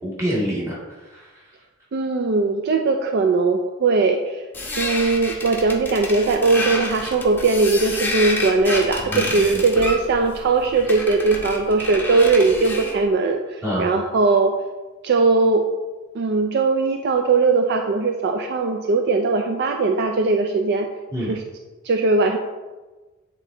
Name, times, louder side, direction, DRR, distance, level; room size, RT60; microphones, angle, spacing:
voice 1, 0.0-1.4 9.0-9.6 13.6-13.9 21.1-21.3, equal, 15° right, -7 dB, 2.0 m, -27 dB
voice 2, 1.9-4.4 4.8-14.5 15.0-15.7 16.1-20.9 21.3-21.4 21.8-22.4, right 3 dB, 55° right, 5 dB, 0.4 m, -19 dB
sound 1, 4.5-13.0, left 2 dB, 10° left, 0.9 m, -29 dB
8.3 x 3.8 x 3.8 m, 1.2 s
head